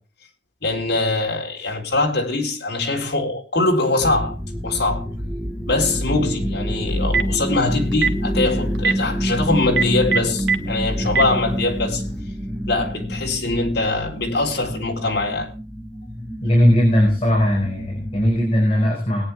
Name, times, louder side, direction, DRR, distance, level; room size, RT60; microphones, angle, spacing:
voice 1, 0.6-4.4 4.6-5.1 5.7-12.0 12.7-15.5, left 2 dB, 60° left, 3.9 m, -22 dB
sound 1, 4.0-18.5, equal, ahead, 1.7 m, -27 dB
Telephone, 6.9-7.4 7.9-8.2 8.7-8.9 9.7-10.6 11.1-11.2, right 5 dB, 80° right, 1.4 m, -19 dB
voice 2, 16.4-19.2, equal, 35° left, 5.1 m, -18 dB
21.5 x 9.5 x 3.4 m
head